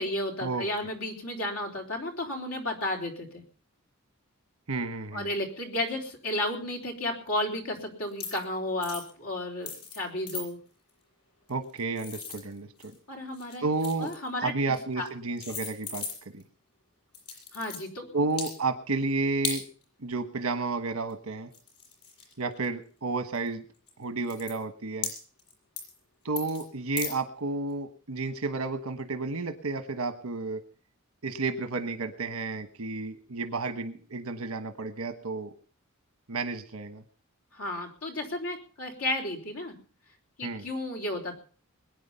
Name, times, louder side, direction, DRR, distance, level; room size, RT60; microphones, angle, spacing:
voice 1, 0.0-3.4 5.1-10.6 13.1-13.6 14.0-14.5 15.0-15.1 17.5-18.2 37.5-39.7 40.4-41.4, left 1 dB, 75° left, 2 dB, 3.6 m, -33 dB
voice 2, 4.7-5.3 11.5-12.9 13.6-14.1 14.4-16.0 16.3-16.4 18.1-19.6 20.0-21.5 22.4-23.6 24.0-25.1 26.2-30.6 31.2-35.5 36.3-37.0 40.4-40.7, right 3 dB, 80° right, 8 dB, 1.2 m, -31 dB
sound 1, 8.1-8.4 8.8-9.1 9.7-10.0 10.3-10.4 11.5-13.0 13.3-14.3 15.0-15.1 15.4-16.4 17.1-17.8 18.3-18.5 19.4-19.6 21.1-21.2 21.5-22.7 23.4-23.5 23.9-24.0 24.2-24.5 25.0-25.5 25.8-26.0 26.4-26.6 27.0-27.1, left 5 dB, 90° left, 7.0 m, -37 dB
21.5 x 9.4 x 5.6 m, 0.41 s
head